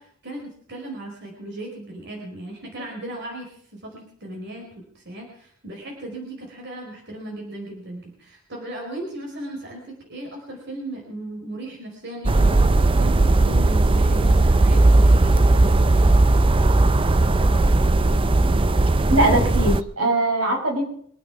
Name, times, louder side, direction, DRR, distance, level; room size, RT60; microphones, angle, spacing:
voice 1, 0.0-3.5 3.8-4.6 4.9-15.4, right 1 dB, 50° right, 0 dB, 5.0 m, -36 dB
sound 1, 12.3-19.8, right 2 dB, 25° right, 0.5 m, -17 dB
voice 2, 19.1-20.9, right 1 dB, 75° right, 1 dB, 6.2 m, -21 dB
24.5 x 9.4 x 6.0 m, 0.62 s
head